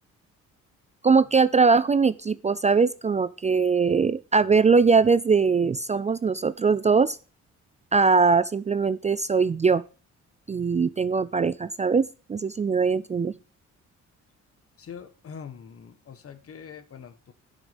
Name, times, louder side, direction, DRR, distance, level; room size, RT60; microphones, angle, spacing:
voice 1, 1.0-7.2 7.9-9.8 10.5-13.3, right 5 dB, 25° right, 16 dB, 0.4 m, -21 dB
voice 2, 14.8-17.3, left 7 dB, 50° left, 11 dB, 1.5 m, -43 dB
10.5 x 6.1 x 5.2 m, 0.36 s
cardioid pair, 90°, 30 cm